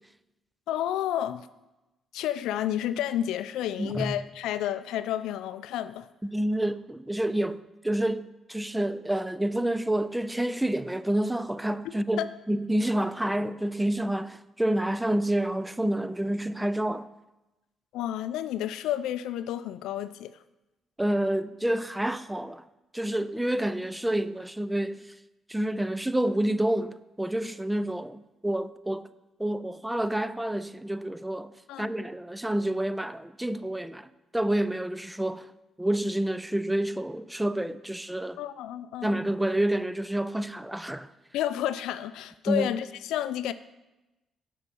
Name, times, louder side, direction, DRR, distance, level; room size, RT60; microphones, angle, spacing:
voice 1, 0.7-1.5 2.1-6.1 12.1-12.3 17.9-20.4 31.7-31.9 38.4-39.2 41.3-43.5, left 11 dB, 90° left, 0.3 m, -30 dB
voice 2, 3.8-4.2 6.2-17.1 21.0-22.6 22.9-25.1 25.5-29.1 29.4-35.5 35.8-38.4 39.0-41.1 42.5-42.7, right 1 dB, 5° right, 0.4 m, -28 dB
8.2 x 5.1 x 5.2 m
cardioid pair, 90°, 0 cm